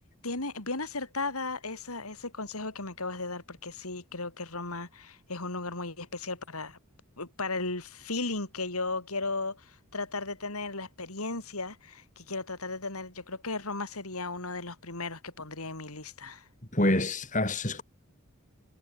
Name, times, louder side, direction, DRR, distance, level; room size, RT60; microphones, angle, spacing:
voice 1, 0.2-6.8 7.2-16.5, left 3 dB, 85° left, 5.0 m, -35 dB
voice 2, 16.7-17.8, left 1 dB, 35° left, 6.7 m, -26 dB
head